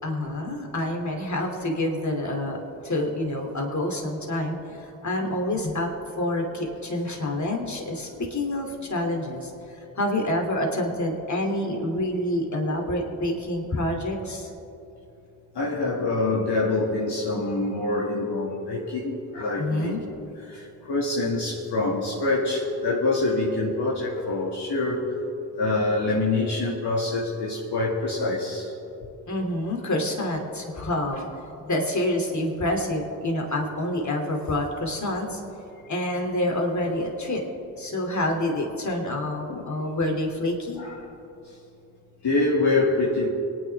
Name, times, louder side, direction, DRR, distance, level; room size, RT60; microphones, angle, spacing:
voice 1, 0.0-2.6 2.8-5.9 6.2-14.5 19.6-20.0 29.3-31.3 31.6-35.4 35.9-37.4 37.7-40.8, left 1 dB, 35° left, 2 dB, 3.0 m, -27 dB
voice 2, 15.5-20.0 20.4-25.0 25.6-28.7 39.4-39.7 40.8-41.0 42.2-43.3, left 2 dB, 55° left, -5 dB, 2.4 m, -25 dB
24.0 x 9.7 x 3.6 m, 2.8 s
hypercardioid pair, 40°, 46 cm